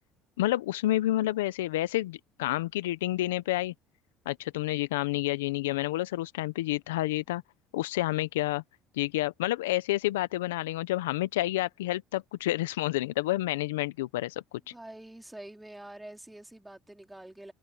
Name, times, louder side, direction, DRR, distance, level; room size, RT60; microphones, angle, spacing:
voice 1, 0.4-3.7 4.3-7.4 7.7-8.6 9.0-14.7, left 16 dB, 90° left, 0.8 m, -29 dB
voice 2, 14.7-17.5, right 1 dB, 10° right, 4.1 m, -46 dB
hypercardioid pair, 75°, 0 cm